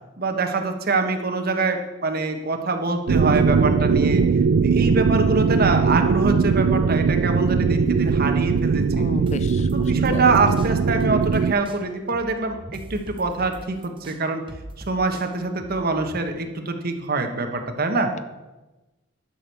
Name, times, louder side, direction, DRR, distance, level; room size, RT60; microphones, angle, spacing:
voice 1, 0.2-4.2 4.6-9.1 9.7-14.4 14.9-18.1, right 3 dB, 50° right, 5 dB, 1.2 m, -24 dB
sound 1, 3.1-11.5, right 5 dB, 70° right, 0.4 m, -20 dB
voice 2, 8.9-10.3, left 3 dB, 35° left, 13 dB, 0.5 m, -34 dB
sound 2, 9.3-11.4 11.6-16.2, right 1 dB, 25° right, 0.7 m, -41 dB
11.0 x 6.3 x 6.9 m, 1.1 s
head